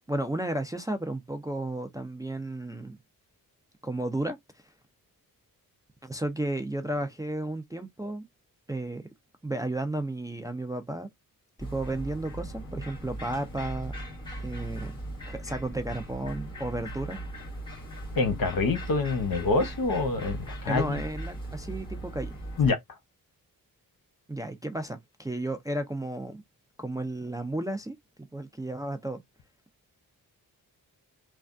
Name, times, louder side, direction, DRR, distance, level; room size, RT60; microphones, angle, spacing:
voice 1, 0.1-3.0 3.8-4.4 6.0-8.2 8.7-9.0 9.4-11.1 11.6-13.9 14.4-15.0 15.3-17.2 20.7-22.4 24.3-26.4 26.8-28.0 28.3-29.2, right 1 dB, 10° right, 0.4 m, -33 dB
sound 1, 11.6-22.7, right 1 dB, 15° left, 1.7 m, -38 dB
voice 2, 18.1-21.0 22.6-22.8, left 4 dB, 65° left, 0.9 m, -26 dB
3.3 x 2.2 x 2.5 m
wide cardioid pair, 145°, 37 cm